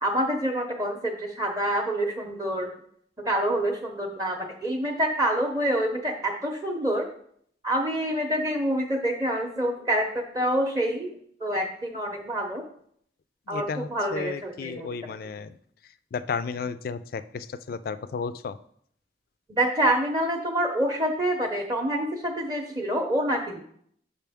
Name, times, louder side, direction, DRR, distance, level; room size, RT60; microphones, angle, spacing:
voice 1, 0.0-2.7 3.2-7.1 7.6-11.1 11.4-12.6 13.5-15.1 19.5-23.6, right 1 dB, 20° right, 2 dB, 0.6 m, -27 dB
voice 2, 13.5-15.5 16.1-18.6, left 5 dB, 50° left, 14 dB, 0.3 m, -33 dB
7.0 x 5.4 x 3.5 m, 0.65 s
head